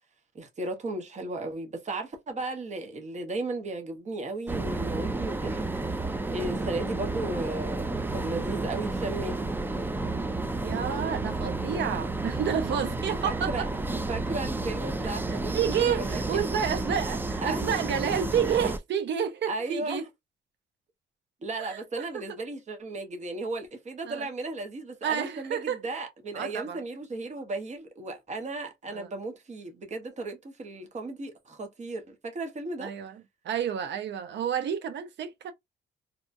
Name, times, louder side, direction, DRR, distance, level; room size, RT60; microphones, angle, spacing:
voice 1, 0.3-5.6 6.3-9.5 13.2-13.7 14.1-16.5 17.4-17.6 18.0-18.2 19.5-20.1 21.4-32.9, right 2 dB, 35° right, 1.0 m, -35 dB
sound 1, 4.5-18.8, right 2 dB, 10° right, 0.4 m, -31 dB
voice 2, 10.6-13.6 15.0-20.1 21.6-22.4 24.1-24.3 25.0-25.8 26.3-26.8 28.9-29.1 32.8-35.5, right 8 dB, 65° right, 0.7 m, -30 dB
2.8 x 2.3 x 2.6 m
cardioid pair, 90°, 20 cm